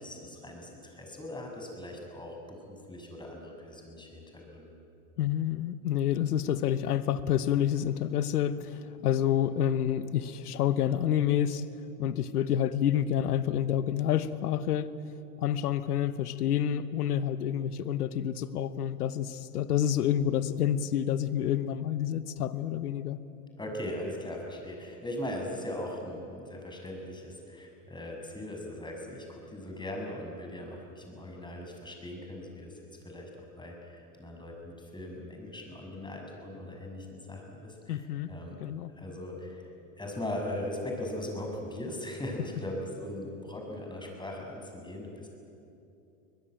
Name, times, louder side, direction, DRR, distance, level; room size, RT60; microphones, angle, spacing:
voice 1, 0.0-4.7 23.6-32.7 33.0-38.6 38.9-39.6 40.0-45.3, left 1 dB, 10° left, 1 dB, 6.6 m, -39 dB
voice 2, 5.2-11.6 12.0-14.9 15.4-23.2 37.9-38.3 38.6-38.9, left 10 dB, 85° left, 15 dB, 1.1 m, -28 dB
23.0 x 20.5 x 9.1 m, 2.8 s
hypercardioid pair, 95°, 45 cm